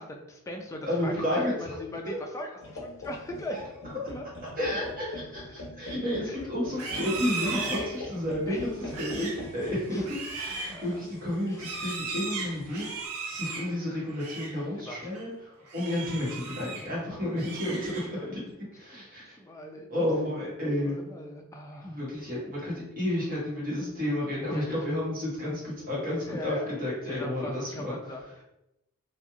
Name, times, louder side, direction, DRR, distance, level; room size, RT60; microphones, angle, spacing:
voice 1, 0.0-3.6 3.9-4.2 6.2-6.4 8.5-8.6 9.9-10.0 10.6-11.1 11.4-11.6 14.7-15.0 17.3-17.4 18.9-19.0 19.4-19.9 20.8-22.0 22.7-22.8 24.4-24.8 26.1-26.7 27.0-28.4, equal, 15° left, 1 dB, 0.3 m, -40 dB
voice 2, 0.8-1.8 2.0-2.2 3.5-3.6 4.6-18.4 18.7-19.4 19.9-21.0 21.8-28.0, left 1 dB, 40° right, -6 dB, 1.2 m, -31 dB
sound 1, 2.6-13.0, left 1 dB, 60° left, 0.8 m, -43 dB
Livestock farm animals working animals, 6.7-14.6 15.0-15.3 15.7-16.9 17.3-18.3, right 4 dB, 90° right, 0.5 m, -37 dB
2.9 x 2.4 x 2.3 m, 0.85 s
head